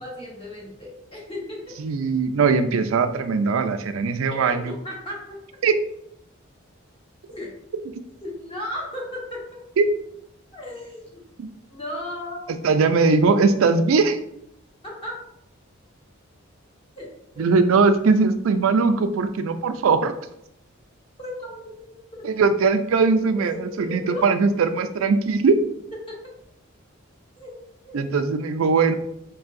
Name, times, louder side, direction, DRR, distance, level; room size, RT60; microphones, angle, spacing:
voice 1, 0.0-1.7 4.3-5.4 7.3-7.5 8.2-9.6 10.5-11.2 11.7-12.6 14.8-15.1 17.0-17.1 21.2-22.2 23.8-24.2 27.4-27.6 27.8-28.0, left 1 dB, 25° left, -4 dB, 1.1 m, -35 dB
voice 2, 1.8-4.7 5.6-5.7 9.8-9.9 11.4-11.5 12.6-14.2 17.4-20.1 22.2-25.6 27.9-28.9, right 4 dB, 80° right, 9 dB, 0.4 m, -20 dB
5.3 x 2.7 x 2.5 m, 0.77 s
head